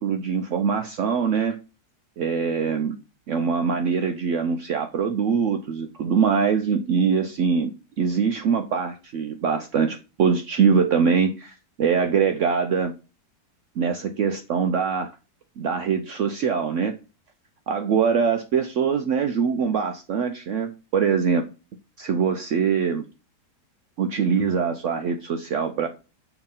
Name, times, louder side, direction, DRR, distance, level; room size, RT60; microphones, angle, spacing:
voice 1, 0.0-1.6 2.2-3.0 3.3-12.9 13.8-15.1 15.6-16.9 17.7-21.5 22.0-23.1 24.0-25.9, right 6 dB, 75° right, 6 dB, 0.7 m, -23 dB
6.9 x 2.9 x 5.5 m, 0.33 s
omnidirectional pair, 1.8 m